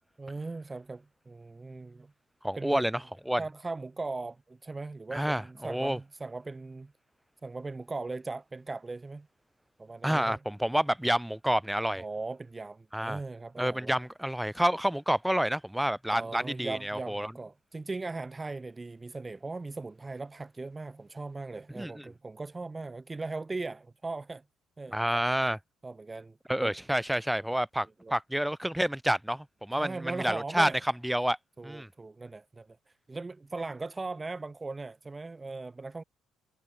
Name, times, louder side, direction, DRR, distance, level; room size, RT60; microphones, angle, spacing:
voice 1, 0.2-2.1 2.5-2.9 3.4-6.9 7.4-9.3 9.8-10.4 12.0-13.9 16.1-24.4 24.8-25.2 25.8-26.7 28.0-28.1 29.7-30.8 31.6-32.8 33.1-36.0, right 3 dB, 20° right, 2.6 m, -39 dB
voice 2, 2.4-3.0 3.3-3.4 5.1-6.0 10.0-12.0 12.9-13.2 13.6-17.3 21.8-21.9 24.9-25.6 26.5-30.7 31.0-31.4 31.6-31.9, equal, 5° right, 2.0 m, -29 dB
supercardioid pair, 85°, 0 cm